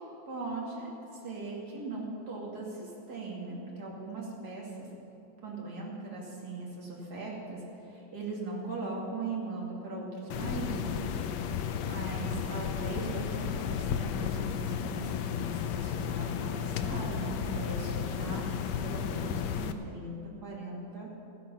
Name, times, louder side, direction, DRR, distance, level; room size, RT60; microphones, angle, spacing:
voice 1, 0.3-4.9 5.4-11.2 11.5-18.4 18.8-20.1 20.4-21.1, right 3 dB, 55° right, -3 dB, 3.0 m, -39 dB
sound 1, 10.3-19.7, left 8 dB, 70° left, 1.2 m, -33 dB
14.5 x 12.0 x 5.6 m, 2.9 s
omnidirectional pair, 2.1 m